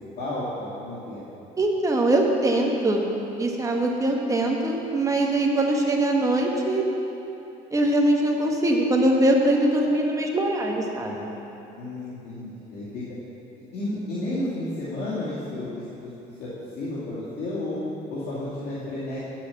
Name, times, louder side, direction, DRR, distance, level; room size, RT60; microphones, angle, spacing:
voice 1, 0.2-1.2 11.8-13.0 13.7-16.1 16.4-16.5 16.8-17.8 18.1-19.2, left 1 dB, 65° left, -10 dB, 2.5 m, -32 dB
voice 2, 1.6-3.1 3.4-6.8 7.7-11.4, right 1 dB, 20° right, 0 dB, 1.5 m, -22 dB
9.2 x 7.4 x 7.2 m, 2.9 s
cardioid pair, 110°, 17 cm